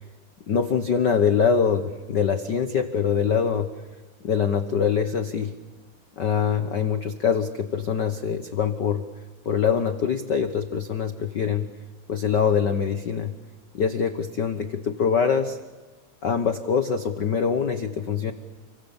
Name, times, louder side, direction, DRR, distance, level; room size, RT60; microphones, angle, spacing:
voice 1, 0.5-3.7 4.2-5.5 6.2-9.0 9.4-11.7 12.1-13.3 13.7-15.6 16.2-18.3, left 7 dB, 90° left, 9 dB, 0.9 m, -24 dB
30.0 x 24.0 x 7.1 m, 1.3 s
omnidirectional pair, 3.7 m